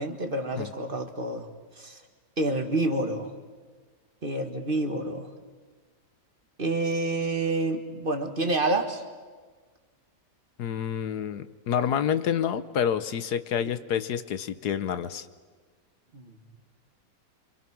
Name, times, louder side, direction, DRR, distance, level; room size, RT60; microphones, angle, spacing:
voice 1, 0.0-1.5 1.8-2.0 2.4-3.3 4.2-5.3 6.6-9.0 16.1-16.4, right 2 dB, 35° right, 5 dB, 1.8 m, -28 dB
voice 2, 10.6-15.3, left 8 dB, 75° left, 12 dB, 1.4 m, -28 dB
27.0 x 26.0 x 6.1 m, 1.5 s
omnidirectional pair, 1.8 m